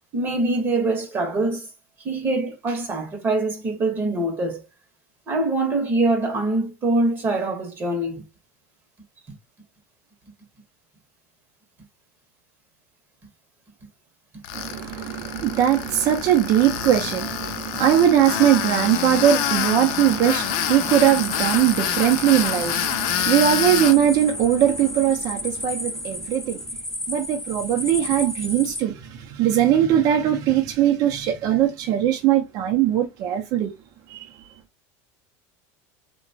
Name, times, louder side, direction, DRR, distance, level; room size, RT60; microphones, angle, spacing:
voice 1, 0.1-1.7 2.0-4.6 5.3-8.2, right 2 dB, 30° right, 0.9 m, -24 dB
Tools, 14.4-24.0, left 11 dB, 65° left, 0.5 m, -27 dB
voice 2, 14.5-26.6 27.1-33.7 34.1-34.4, right 11 dB, 50° right, 0.7 m, -20 dB
sound 1, 20.4-28.8, left 1 dB, 5° left, 0.7 m, -33 dB
2.9 x 2.2 x 2.6 m
supercardioid pair, 125°, 8 cm